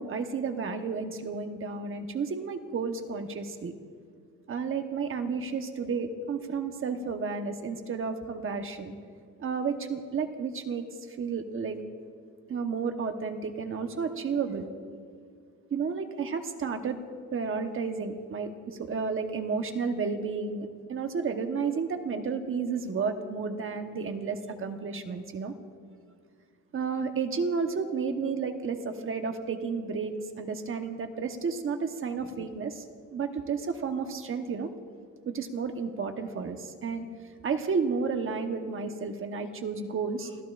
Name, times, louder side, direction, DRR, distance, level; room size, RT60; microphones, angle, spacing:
voice 1, 0.0-3.7 4.5-8.9 9.4-11.8 12.5-14.7 15.7-17.0 17.3-25.5 26.7-32.8 33.1-34.7 35.3-37.0 37.4-40.4, right 5 dB, 45° right, 6 dB, 1.1 m, -32 dB
29.5 x 16.5 x 2.5 m, 2.1 s
cardioid pair, 130°, 30 cm